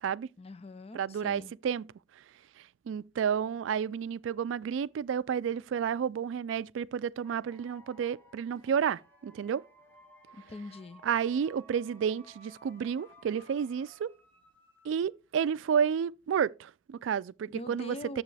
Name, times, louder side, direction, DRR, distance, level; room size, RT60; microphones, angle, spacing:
voice 1, 0.4-1.5 10.3-11.0 17.5-18.2, left 2 dB, 30° left, 0.5 m, -43 dB
voice 2, 0.9-1.9 2.9-9.6 11.0-14.1 14.8-18.2, right 7 dB, 80° right, 0.3 m, -31 dB
sound 1, 7.2-15.3, equal, 10° left, 1.5 m, -58 dB
8.9 x 7.2 x 3.3 m
head